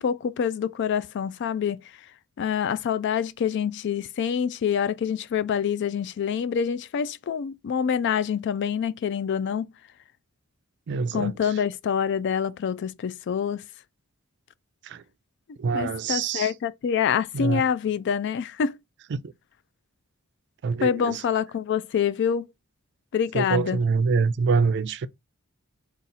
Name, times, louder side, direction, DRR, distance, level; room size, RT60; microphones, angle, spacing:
voice 1, 0.0-1.9 2.4-9.7 11.1-13.6 15.7-18.8 20.8-22.5 23.1-23.8, left 7 dB, 55° left, 0.3 m, -26 dB
voice 2, 10.9-11.5 14.8-15.0 15.6-16.5 17.3-17.6 19.1-19.3 20.6-21.2 23.3-25.1, right 5 dB, 55° right, 0.4 m, -25 dB
4.0 x 2.4 x 4.0 m
head